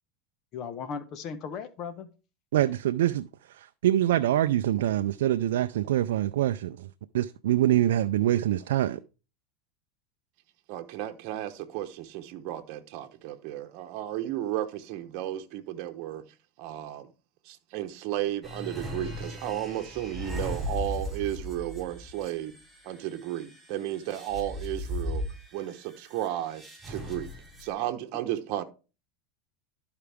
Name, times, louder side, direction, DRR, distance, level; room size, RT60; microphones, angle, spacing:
voice 1, 0.5-2.1, left 6 dB, 45° left, 1.0 m, -37 dB
voice 2, 2.5-6.9 7.1-9.0, right 13 dB, 80° right, 0.4 m, -25 dB
voice 3, 10.7-16.2 16.6-17.1 17.4-22.5 22.8-25.2 25.5-27.3 27.6-28.6, right 12 dB, 55° right, 1.0 m, -34 dB
sound 1, 18.4-27.7, left 1 dB, 10° right, 5.5 m, -38 dB
12.5 x 4.8 x 3.5 m
supercardioid pair, 115°, 0 cm